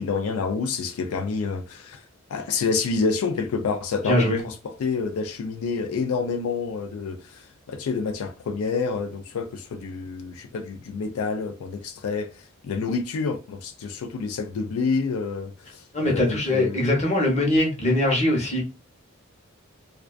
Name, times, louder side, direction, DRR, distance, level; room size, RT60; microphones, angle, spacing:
voice 1, 0.0-2.0 2.3-16.8, left 4 dB, 85° left, 0.4 m, -28 dB
voice 2, 4.0-4.4 15.9-18.6, left 1 dB, 30° left, 0.8 m, -22 dB
2.4 x 2.2 x 2.3 m
head